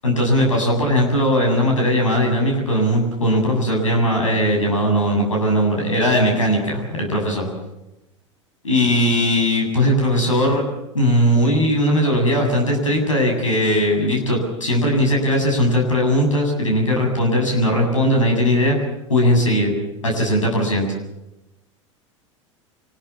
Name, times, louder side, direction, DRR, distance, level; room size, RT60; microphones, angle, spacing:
voice 1, 0.0-7.5 8.6-10.6 10.9-18.8 19.1-19.7 20.0-20.9, equal, 90° left, 1 dB, 7.8 m, -19 dB
26.0 x 21.0 x 7.3 m, 0.93 s
hypercardioid pair, 80°, 16 cm